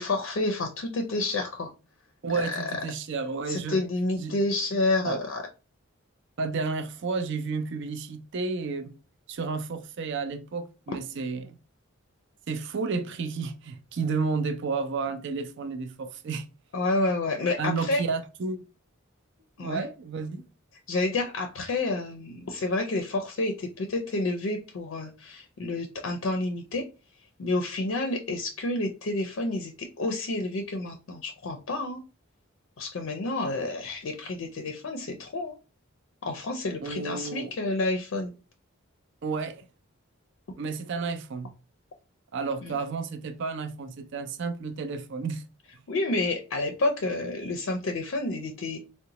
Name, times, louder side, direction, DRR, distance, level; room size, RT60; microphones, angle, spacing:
voice 1, 0.0-1.7 2.5-2.6 3.5-5.4 16.7-18.0 19.6-19.8 20.9-26.8 27.4-32.0 32.8-35.5 36.2-38.3 42.6-42.7 45.9-48.8, left 2 dB, 65° left, 0.4 m, -29 dB
voice 2, 2.2-3.9 4.2-4.4 5.0-5.2 6.4-8.9 9.3-11.6 12.5-16.5 17.6-18.7 19.6-20.5 36.8-37.5 39.2-39.6 40.6-41.5 42.3-45.4, right 4 dB, 60° right, 0.4 m, -31 dB
3.8 x 2.1 x 2.8 m
head